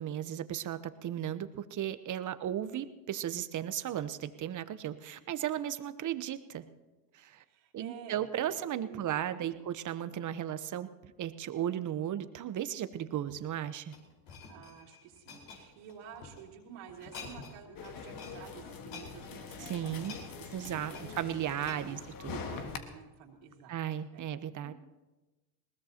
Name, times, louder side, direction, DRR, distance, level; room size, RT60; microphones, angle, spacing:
voice 1, 0.0-6.6 7.1-7.4 7.7-13.9 19.6-20.1 20.5-22.3 23.7-24.7, right 11 dB, 40° right, 12 dB, 1.0 m, -35 dB
voice 2, 7.5-9.6 14.5-19.9 20.2-21.1 21.7-22.0 22.3-23.8 24.1-24.4 24.6-24.7, right 7 dB, 65° right, -1 dB, 3.0 m, -50 dB
sound 1, 13.3-16.4 16.9-17.6 17.8-18.4 18.7-22.9 23.5-23.6, left 4 dB, 60° left, 5.0 m, -49 dB
sound 2, 17.8-22.8, left 6 dB, 45° left, 1.7 m, -44 dB
20.5 x 19.5 x 3.0 m, 1.1 s
hypercardioid pair, 80°, 49 cm